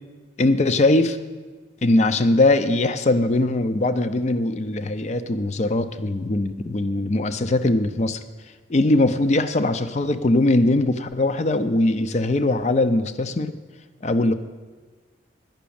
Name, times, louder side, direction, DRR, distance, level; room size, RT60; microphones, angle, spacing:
voice 1, 0.4-1.2 1.8-8.2 8.7-13.5 14.0-14.3, left 2 dB, 35° left, 11 dB, 0.4 m, -21 dB
10.5 x 6.1 x 8.5 m, 1.4 s
head